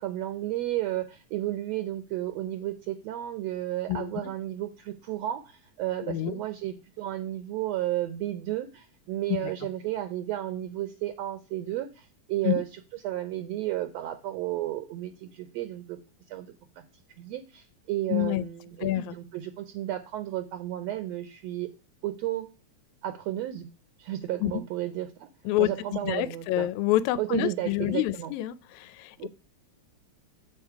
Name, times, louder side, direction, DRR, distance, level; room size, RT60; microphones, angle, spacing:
voice 1, 0.0-12.7 13.0-16.0 16.3-16.5 16.8-16.9 17.2-21.7 22.0-22.5 23.0-23.7 24.0-25.3 25.6-26.7 27.2-28.3 29.2-29.3, right 14 dB, 75° right, 1.7 m, -33 dB
voice 2, 6.0-6.4 9.4-9.5 12.4-12.6 18.1-18.4 18.8-19.2 24.4-24.6 25.5-25.7 26.0-29.3, left 14 dB, 80° left, 1.9 m, -27 dB
7.3 x 7.3 x 4.6 m
omnidirectional pair, 3.4 m